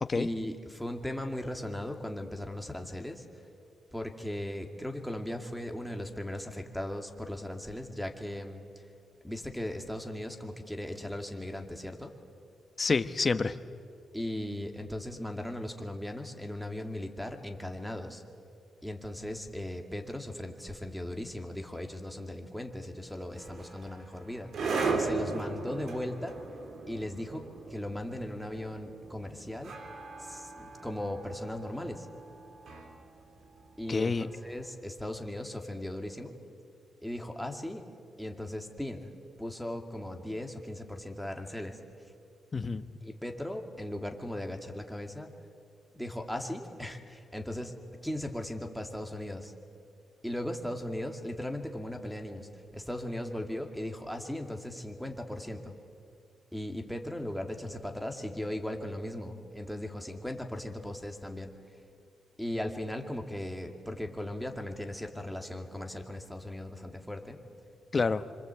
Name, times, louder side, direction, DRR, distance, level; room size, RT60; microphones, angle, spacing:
voice 1, 0.1-3.3 3.9-8.8 9.2-12.1 14.1-18.2 18.8-24.5 24.9-26.4 26.9-29.8 30.2-32.1 33.8-36.3 37.0-37.9 38.2-39.1 39.4-41.8 43.0-45.3 45.9-47.7 48.0-49.5 50.2-55.7 56.5-61.6 62.4-67.4, left 1 dB, ahead, 3 dB, 2.3 m, -38 dB
voice 2, 12.8-13.6 33.9-34.3 42.5-42.8 67.9-68.2, left 4 dB, 30° left, 11 dB, 1.0 m, -28 dB
sound 1, 23.4-34.5, right 4 dB, 65° right, 3.0 m, -38 dB
27.5 x 25.5 x 8.3 m, 2.3 s
cardioid pair, 115°, 0 cm